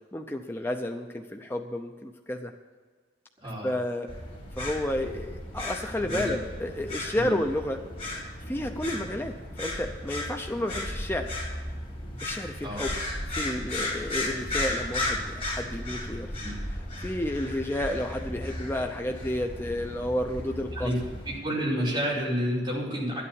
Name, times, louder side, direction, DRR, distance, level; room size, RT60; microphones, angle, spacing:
voice 1, 0.1-2.5 3.6-4.1 4.6-7.8 8.5-11.3 12.2-12.9 13.3-16.3 17.0-20.9, left 1 dB, 10° left, 3 dB, 0.6 m, -31 dB
voice 2, 3.4-3.7 6.0-6.4 7.1-7.4 12.6-12.9 16.4-16.6 20.7-21.0 21.2-23.2, equal, 25° right, -6 dB, 4.9 m, -30 dB
sound 1, 4.1-21.4, left 1 dB, 35° left, 4.3 m, -35 dB
12.0 x 8.5 x 7.0 m, 1.5 s
head